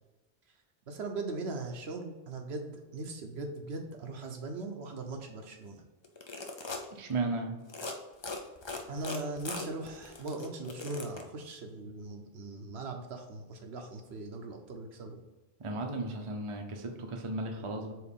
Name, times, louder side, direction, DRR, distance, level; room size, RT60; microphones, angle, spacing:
voice 1, 0.9-5.8 8.9-15.2, right 2 dB, 75° right, 3 dB, 1.0 m, -39 dB
sound 1, 6.0-6.9 7.6-7.9 8.2-11.2, left 3 dB, 35° left, 0.5 m, -40 dB
voice 2, 6.9-7.5 15.6-17.9, right 2 dB, 35° right, 3 dB, 0.7 m, -35 dB
4.8 x 3.9 x 5.3 m, 1.1 s
omnidirectional pair, 1.1 m